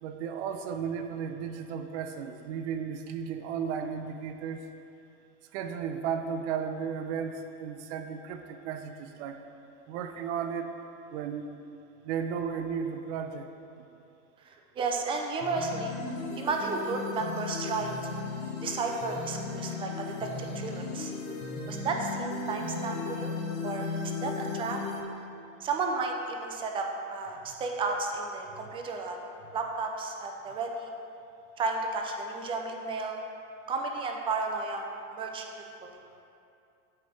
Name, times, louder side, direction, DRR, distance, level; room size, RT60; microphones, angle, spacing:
voice 1, 0.0-4.6 5.5-9.4 9.9-10.7 11.1-11.5 12.0-13.5 27.5-27.6, right 7 dB, 60° right, 7 dB, 0.6 m, -34 dB
voice 2, 14.4-15.9 16.4-18.3 18.6-21.1 21.7-23.3 23.6-23.9 24.2-24.8 25.6-29.2 29.5-30.9 31.6-33.2 33.7-34.8 35.1-35.9, right 3 dB, 15° right, 2 dB, 0.3 m, -33 dB
sound 1, 15.4-25.0, left 4 dB, 45° left, 0.9 m, -36 dB
8.5 x 3.3 x 4.0 m, 2.6 s
supercardioid pair, 125°, 38 cm